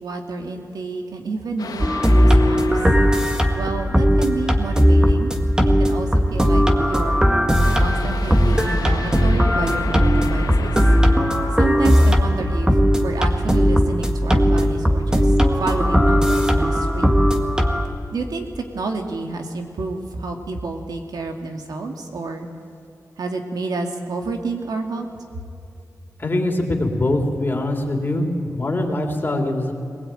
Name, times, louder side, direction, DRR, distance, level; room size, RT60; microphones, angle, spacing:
voice 1, 0.0-2.6 3.5-5.4 5.7-7.2 7.8-10.8 11.6-12.7 13.0-15.3 15.6-17.3 18.1-22.5 23.2-25.1, right 3 dB, 85° right, 3 dB, 2.4 m, -29 dB
sound 1, 1.6-4.7 7.6-12.8, left 5 dB, 85° left, 1.5 m, -34 dB
sound 2, 1.8-17.8, equal, 10° right, 1.7 m, -17 dB
voice 2, 26.2-29.7, left 1 dB, 30° left, 2 dB, 3.3 m, -23 dB
22.0 x 20.0 x 9.1 m, 2.6 s
wide cardioid pair, 105°, 7 cm